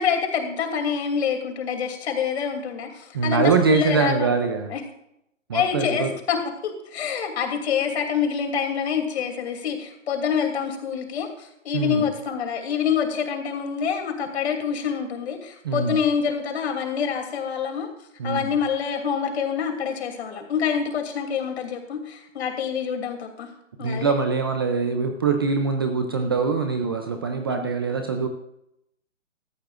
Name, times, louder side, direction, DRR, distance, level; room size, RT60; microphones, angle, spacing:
voice 1, 0.0-4.3 4.7-4.8 5.5-17.9 18.2-23.5 23.8-24.1 27.5-27.7, left 7 dB, 55° left, 4 dB, 2.9 m, -26 dB
voice 2, 3.1-4.7 5.5-6.1 11.7-12.0 15.6-16.0 18.2-18.5 23.8-28.3, right 5 dB, 20° right, 6 dB, 0.4 m, -23 dB
16.5 x 14.0 x 2.5 m, 0.79 s
hypercardioid pair, 145°, 39 cm